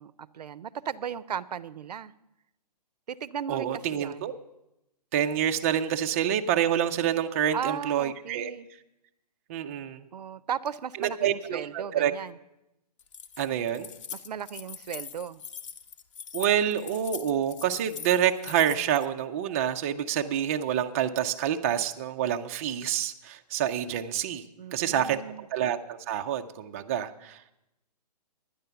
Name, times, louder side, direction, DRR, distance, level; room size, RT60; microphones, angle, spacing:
voice 1, 0.0-2.1 3.1-4.3 7.5-8.7 10.1-12.4 14.1-15.4 24.6-25.5, right 8 dB, 70° right, 19 dB, 0.6 m, -36 dB
voice 2, 3.5-4.3 5.1-8.5 9.5-10.1 11.0-12.1 13.4-13.9 16.3-24.4 24.7-27.4, right 10 dB, 20° right, 5 dB, 0.4 m, -27 dB
Keys jangling, 13.0-19.0, left 7 dB, 45° left, 0.9 m, -42 dB
10.5 x 10.0 x 6.8 m, 0.90 s
hypercardioid pair, 150°, 21 cm